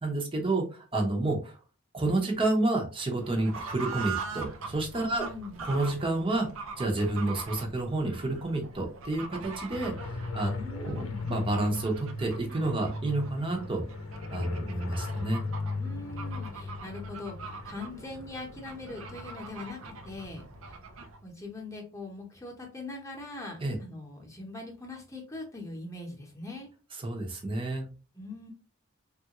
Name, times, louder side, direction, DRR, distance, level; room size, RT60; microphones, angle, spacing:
voice 1, 0.0-1.6 1.9-5.3 5.6-6.5 6.8-13.8 14.3-15.4 23.6-23.8 26.9-27.8, right 2 dB, 25° right, 2 dB, 0.8 m, -30 dB
Fowl / Bird, 3.2-21.2, right 4 dB, 90° right, 0.5 m, -43 dB
voice 2, 5.1-5.6 10.5-11.3 15.8-20.8 21.2-26.7 28.1-28.5, left 2 dB, 15° left, 0 dB, 0.9 m, -42 dB
sound 1, 9.7-20.7, left 3 dB, 85° left, 0.7 m, -38 dB
3.4 x 2.4 x 2.9 m, 0.35 s
head